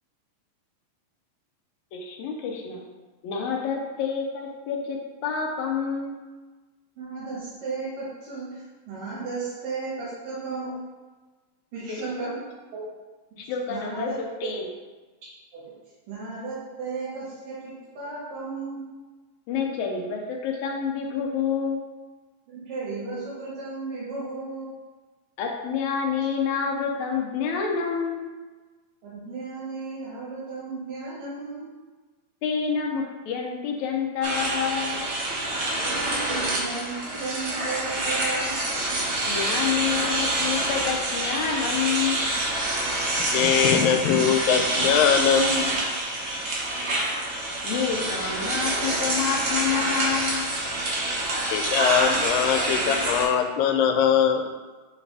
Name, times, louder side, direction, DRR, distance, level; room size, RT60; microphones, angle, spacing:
voice 1, 1.9-2.8 3.2-6.2 11.9-12.4 13.4-14.7 19.5-21.8 25.4-28.3 32.4-35.1 39.2-42.3 47.6-50.5, left 6 dB, 75° left, 0 dB, 1.8 m, -28 dB
voice 2, 7.0-10.7 11.7-12.3 12.7-12.8 13.3-13.4 13.7-14.5 15.5-15.6 16.1-18.8 22.5-24.7 29.0-31.7 35.8-39.1, right 3 dB, 75° right, -9 dB, 3.2 m, -34 dB
sound 1, 34.2-53.2, right 1 dB, 50° right, 1.7 m, -27 dB
voice 3, 43.3-45.7 51.5-54.5, left 8 dB, 90° left, 5 dB, 2.3 m, -22 dB
6.8 x 4.8 x 3.4 m, 1.3 s
omnidirectional pair, 3.9 m